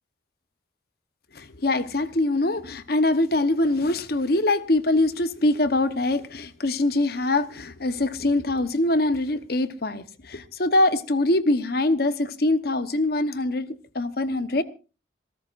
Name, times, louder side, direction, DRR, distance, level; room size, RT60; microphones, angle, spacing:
voice 1, 1.3-14.6, left 2 dB, 55° left, 12 dB, 1.0 m, -23 dB
26.5 x 14.0 x 2.5 m, 0.33 s
head